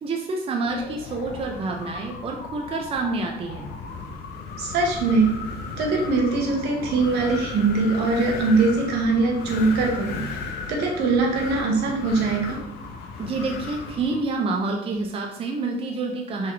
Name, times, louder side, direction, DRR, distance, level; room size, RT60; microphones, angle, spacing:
voice 1, 0.0-3.7 13.2-16.5, right 3 dB, 35° right, 1 dB, 0.5 m, -28 dB
Wind, 0.7-14.3, left 4 dB, 80° left, 0.6 m, -36 dB
voice 2, 4.6-5.4 5.8-10.4 10.7-12.6, right 3 dB, 75° right, 0 dB, 1.0 m, -22 dB
3.9 x 3.0 x 2.9 m, 0.78 s
cardioid pair, 110°, 17 cm